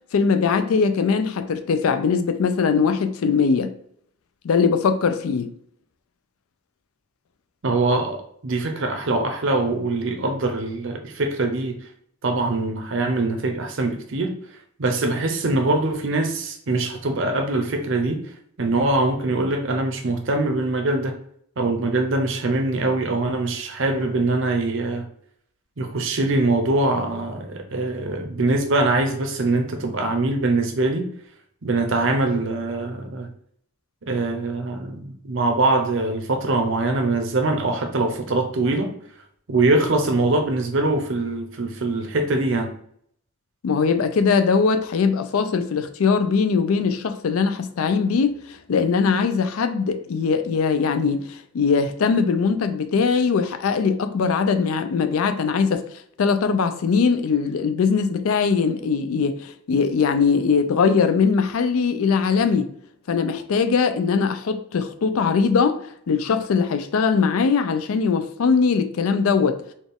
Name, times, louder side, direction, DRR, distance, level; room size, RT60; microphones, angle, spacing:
voice 1, 0.1-3.7 4.4-5.5 43.6-55.8 56.2-62.7 63.1-65.8 66.1-69.6, left 5 dB, 75° left, 0.4 m, -21 dB
voice 2, 7.6-11.8 12.2-14.3 14.8-18.2 18.6-21.2 21.6-25.0 25.8-31.1 31.6-33.3 34.1-38.9 39.5-42.7, right 2 dB, 55° right, 0.6 m, -23 dB
4.1 x 2.4 x 3.4 m
head